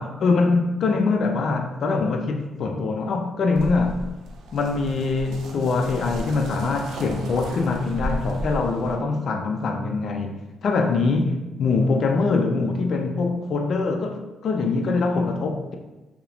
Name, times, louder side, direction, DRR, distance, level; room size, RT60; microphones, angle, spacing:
voice 1, 0.0-4.0 4.5-15.8, left 3 dB, 60° left, 0.3 m, -23 dB
sound 1, 3.5-9.0, equal, 80° right, 0.4 m, -34 dB
2.8 x 2.0 x 2.4 m
cardioid pair, 90°, 0 cm